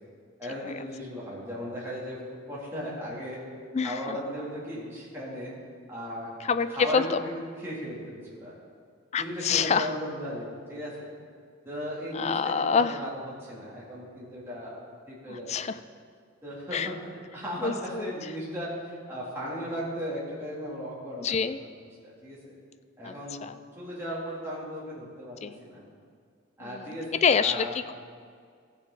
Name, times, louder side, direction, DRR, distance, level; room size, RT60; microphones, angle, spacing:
voice 1, 0.4-2.2 2.5-3.4 3.8-5.5 5.9-6.3 6.7-7.3 7.6-8.0 8.3-8.5 9.2-11.1 11.6-14.8 15.1-15.7 16.4-21.3 22.0-22.4 23.0-23.4 23.7-25.8 26.6-27.7, equal, 10° right, -8 dB, 3.0 m, -36 dB
voice 2, 3.7-4.2 6.4-7.2 9.1-9.9 12.1-13.0 15.3-15.8 16.7-16.9 17.6-18.1 21.2-21.6 23.0-23.6 25.4-25.6 26.6-27.9, left 6 dB, 35° left, 12 dB, 0.3 m, -27 dB
15.5 x 7.1 x 4.0 m, 2.1 s
head